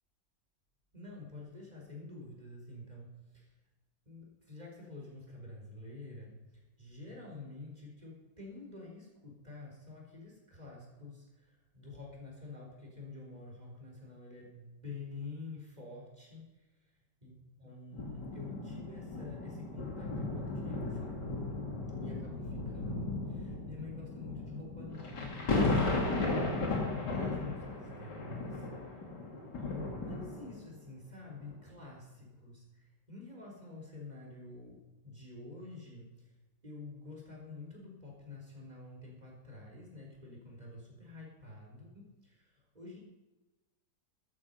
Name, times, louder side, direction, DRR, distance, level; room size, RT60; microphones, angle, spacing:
voice 1, 0.9-3.5 4.1-16.6 17.2-17.3 17.6-21.1 22.0-29.2 29.6-36.3 36.6-43.0, left 3 dB, 20° right, -2 dB, 4.2 m, -48 dB
sound 1, 17.9-30.7 31.4-31.5, left 2 dB, 65° left, 2.9 m, -35 dB
14.0 x 13.0 x 5.5 m, 1.1 s
omnidirectional pair, 2.0 m